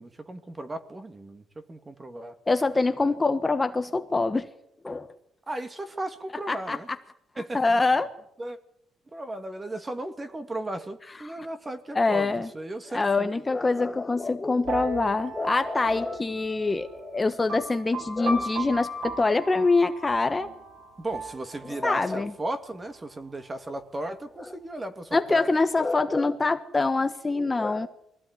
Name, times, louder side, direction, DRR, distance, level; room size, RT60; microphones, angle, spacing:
voice 1, 0.0-1.4 1.7-2.3 5.5-6.9 7.4-7.8 8.4-8.6 9.1-13.4 21.0-25.5, right 1 dB, 20° right, 8 dB, 2.4 m, -36 dB
voice 2, 2.5-4.5 4.8-5.1 6.5-6.8 7.5-8.1 11.2-11.3 11.9-12.5 12.9-20.5 21.7-22.3 25.1-27.9, left 3 dB, 20° left, 8 dB, 1.3 m, -25 dB
sound 1, 14.7-22.2, right 2 dB, 60° right, 5.2 m, -37 dB
23.5 x 16.5 x 9.7 m, 0.75 s
cardioid pair, 125°, 0 cm